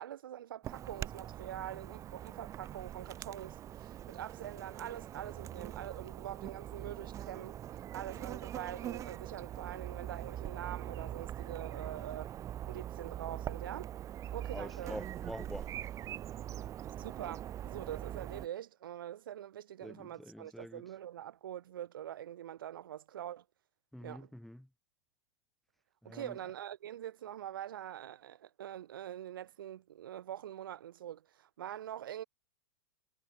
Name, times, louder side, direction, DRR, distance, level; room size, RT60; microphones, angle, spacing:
voice 1, 0.0-12.3 12.7-13.9 14.3-15.0 17.0-23.4 24.0-24.3 26.1-32.2, right 11 dB, 70° right, 1.8 m, -44 dB
Chirp tweet / Buzz, 0.6-18.5, right 11 dB, 25° right, 0.7 m, -43 dB
voice 2, 14.5-15.7 19.8-20.8 23.9-24.7 26.0-26.4, equal, ahead, 0.9 m, -46 dB
hypercardioid pair, 110°, 12 cm